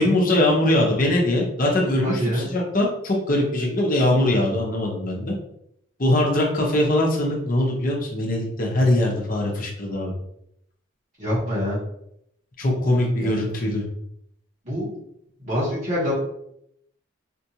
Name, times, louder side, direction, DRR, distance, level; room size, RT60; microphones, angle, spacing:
voice 1, 0.0-5.3 6.0-10.1 12.6-13.8, left 1 dB, 40° left, -1 dB, 0.9 m, -21 dB
voice 2, 2.0-2.5 11.2-11.8 13.2-13.3 14.6-15.0 15.4-16.1, equal, 35° right, -8 dB, 1.2 m, -25 dB
4.4 x 2.5 x 2.8 m, 0.74 s
head